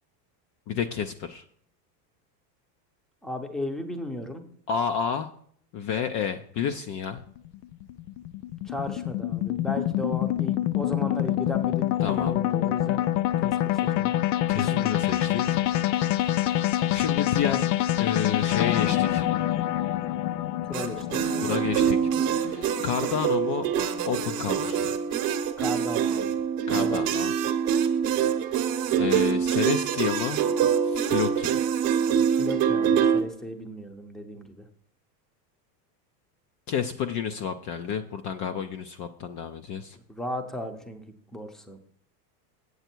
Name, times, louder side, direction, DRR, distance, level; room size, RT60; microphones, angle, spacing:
voice 1, 0.7-1.4 4.7-5.3 5.7-7.2 12.0-12.4 14.1-15.6 16.9-17.7 18.0-19.2 21.4-22.0 22.3-23.7 24.0-25.0 26.7-27.3 29.0-30.4 30.8-31.6 36.7-40.0, left 7 dB, 40° left, 7 dB, 0.5 m, -30 dB
voice 2, 3.2-4.4 8.6-13.1 13.4-13.6 13.9-14.1 14.5-15.0 20.7-21.3 25.6-26.3 26.7-27.0 32.3-34.7 40.1-41.0 41.3-41.8, left 1 dB, ahead, 6 dB, 0.7 m, -35 dB
sound 1, 7.2-23.6, left 13 dB, 85° left, 0.6 m, -26 dB
sound 2, 20.7-33.2, right 8 dB, 40° right, 1.0 m, -25 dB
8.1 x 7.9 x 4.5 m, 0.62 s
supercardioid pair, 130°, 49 cm